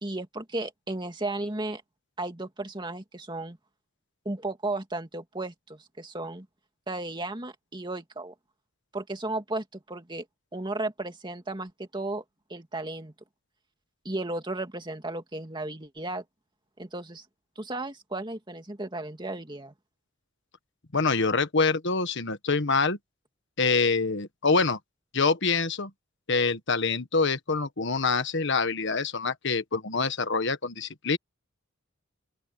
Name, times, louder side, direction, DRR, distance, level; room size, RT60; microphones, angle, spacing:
voice 1, 0.0-1.8 2.2-3.6 4.2-6.5 6.9-8.3 8.9-10.2 10.5-12.2 12.5-13.1 14.0-16.2 16.8-17.2 17.6-19.7, right 2 dB, 20° right, 2.4 m, -34 dB
voice 2, 20.9-23.0 23.6-24.8 25.1-25.9 26.3-31.2, left 4 dB, 60° left, 1.5 m, -25 dB
open air
head